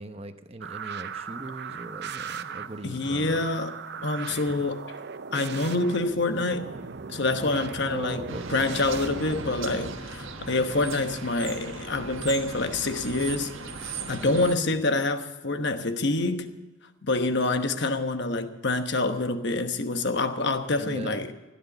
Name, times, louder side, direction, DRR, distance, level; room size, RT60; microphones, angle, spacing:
voice 1, 0.0-3.5 3.9-4.7 7.9-8.7 14.3-14.8 20.7-21.3, right 1 dB, 30° right, 0.9 m, -39 dB
sound 1, 0.6-10.0, right 5 dB, 50° right, 0.6 m, -38 dB
voice 2, 2.8-4.9 5.3-6.8 7.1-16.6 17.1-21.3, left 2 dB, 55° left, 1.1 m, -27 dB
sound 2, 8.3-14.6, right 4 dB, 70° right, 1.5 m, -38 dB
16.0 x 10.5 x 6.9 m
head